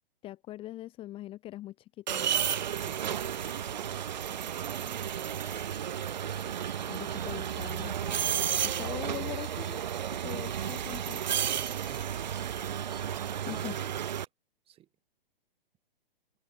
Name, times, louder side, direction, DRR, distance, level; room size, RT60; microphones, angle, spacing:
voice 1, 0.2-2.4 6.9-8.1 8.6-9.8 10.1-11.2 13.5-13.7, left 15 dB, 20° left, 2.0 m, -42 dB
sound 1, 2.1-14.2, right 9 dB, 50° right, 0.6 m, -33 dB
sound 2, 2.5-13.7, right 5 dB, 65° right, 3.2 m, -47 dB
voice 2, 2.8-5.6 11.5-12.6 12.9-14.0 14.7-14.9, right 12 dB, 20° right, 7.6 m, -53 dB
figure-of-eight pair, 120°, 30 cm